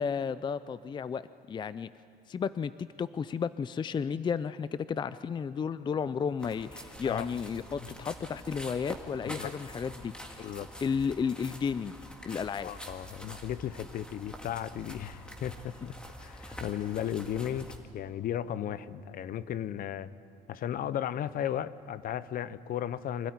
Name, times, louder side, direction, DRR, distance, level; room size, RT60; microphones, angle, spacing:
voice 1, 0.0-1.9 2.3-10.4 10.8-12.0 12.2-12.7, left 6 dB, 25° left, 15 dB, 0.4 m, -33 dB
sound 1, 6.4-17.8, equal, 5° left, 2.0 m, -46 dB
voice 2, 10.4-10.7 12.6-20.1 20.5-23.3, left 10 dB, 60° left, 16 dB, 0.7 m, -35 dB
25.0 x 13.0 x 9.6 m, 2.5 s
cardioid pair, 110°, 17 cm